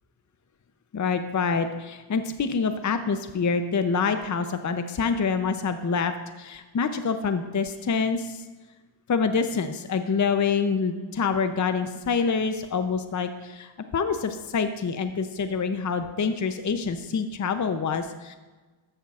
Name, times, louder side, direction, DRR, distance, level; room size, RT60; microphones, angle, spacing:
voice 1, 0.9-6.1 6.4-8.4 9.1-18.4, left 5 dB, 40° left, 8 dB, 0.6 m, -26 dB
13.5 x 11.0 x 2.4 m, 1.3 s
cardioid pair, 70°, 48 cm